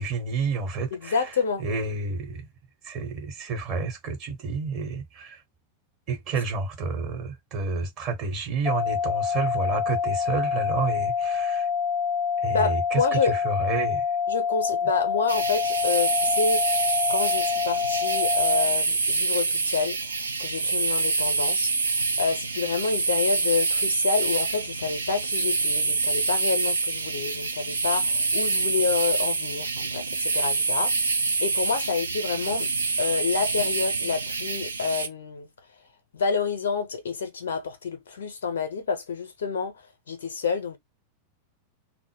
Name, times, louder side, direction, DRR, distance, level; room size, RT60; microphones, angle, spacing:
voice 1, 0.0-1.3 1.6-2.5 2.8-5.4 6.1-11.7 12.4-14.1, right 4 dB, 40° right, 0.9 m, -30 dB
voice 2, 0.9-1.6 12.5-13.3 14.3-16.7 17.1-21.7 22.2-30.9 31.4-32.7 33.0-35.5 36.1-39.7 40.1-40.8, left 5 dB, 65° left, 0.6 m, -28 dB
sound 1, 8.7-18.7, left 6 dB, 10° left, 0.5 m, -26 dB
sound 2, 15.3-35.1, right 4 dB, 75° right, 0.4 m, -26 dB
2.0 x 2.0 x 3.1 m
figure-of-eight pair, 90°, 0 cm